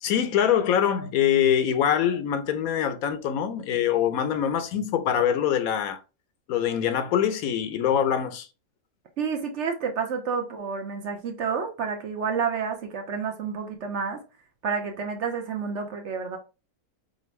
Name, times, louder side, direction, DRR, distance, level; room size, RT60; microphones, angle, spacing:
voice 1, 0.0-6.0 6.5-8.5, left 9 dB, 75° left, 1.0 m, -24 dB
voice 2, 9.2-14.2 14.6-16.4, right 6 dB, 60° right, 0.9 m, -29 dB
5.1 x 2.5 x 3.1 m
omnidirectional pair, 1.5 m